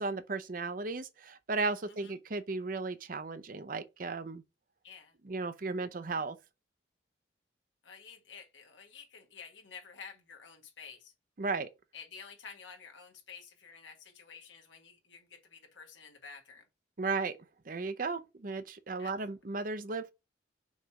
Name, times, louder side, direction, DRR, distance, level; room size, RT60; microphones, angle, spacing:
voice 1, 0.0-4.4 5.2-6.4 11.4-11.7 17.0-17.4 17.7-20.1, right 3 dB, 45° right, 0.6 m, -35 dB
voice 2, 1.9-2.2 4.8-5.1 7.8-11.1 11.9-16.6 19.0-19.1, left 6 dB, 80° left, 1.5 m, -51 dB
6.3 x 3.3 x 4.7 m
head